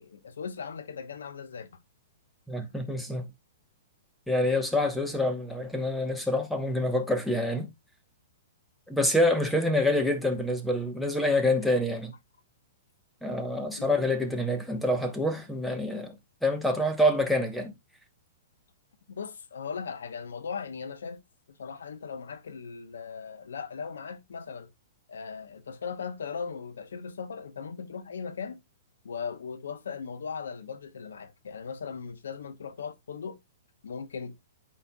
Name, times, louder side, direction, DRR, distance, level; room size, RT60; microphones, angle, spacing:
voice 1, 0.0-1.8 13.7-14.2 19.1-21.2 21.5-24.7 25.1-28.6 29.0-33.4 33.8-34.4, left 6 dB, 90° left, 1.0 m, -38 dB
voice 2, 2.5-3.3 4.3-7.7 8.9-12.1 13.2-16.2 16.4-17.7, left 1 dB, ahead, 1.1 m, -26 dB
11.0 x 4.4 x 2.3 m
hypercardioid pair, 145°, 0 cm